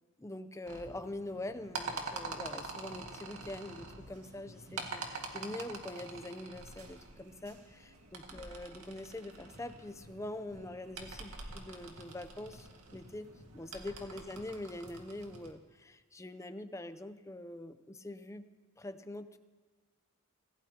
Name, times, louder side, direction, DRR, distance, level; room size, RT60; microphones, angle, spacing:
voice 1, 0.2-18.5 18.8-19.4, left 1 dB, 15° left, 11 dB, 0.6 m, -44 dB
sound 1, 0.7-15.5, right 3 dB, 80° right, 1.9 m, -46 dB
25.0 x 17.0 x 2.9 m, 1.5 s
head